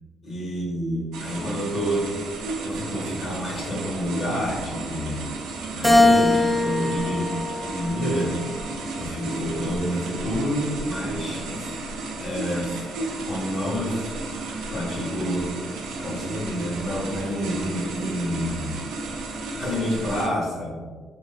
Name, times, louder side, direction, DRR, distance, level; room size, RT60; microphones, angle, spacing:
voice 1, 0.2-2.1 2.6-5.2 5.7-7.2 7.6-8.4 9.0-11.7 12.2-12.8 13.2-14.1 14.7-15.5 16.0-18.7 19.6-20.9, equal, 50° left, -3 dB, 1.1 m, -28 dB
sound 1, 1.1-20.3, right 3 dB, 85° right, 0.4 m, -33 dB
Keyboard (musical), 5.8-8.3 8.9-10.1, left 2 dB, ahead, 0.4 m, -22 dB
3.4 x 2.1 x 2.3 m, 1.5 s
cardioid pair, 90°, 0 cm